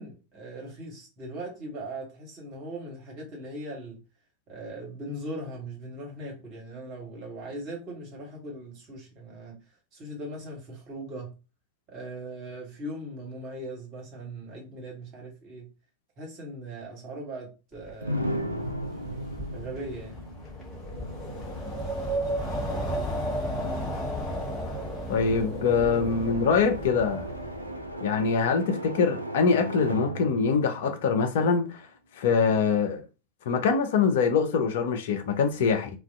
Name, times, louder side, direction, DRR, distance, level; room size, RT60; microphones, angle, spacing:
voice 1, 0.0-4.0 4.5-9.6 9.9-11.4 11.9-15.7 16.2-18.6 19.5-20.2, right 1 dB, 35° right, 1.2 m, -39 dB
Wind, 17.9-27.9, equal, 10° left, 1.0 m, -34 dB
sound 1, 18.0-31.8, right 1 dB, 85° right, 0.3 m, -37 dB
voice 2, 25.1-27.3 28.0-31.9 32.2-33.0 33.5-35.9, left 5 dB, 55° left, 0.5 m, -24 dB
2.3 x 2.2 x 2.5 m
figure-of-eight pair, 90°, 0 cm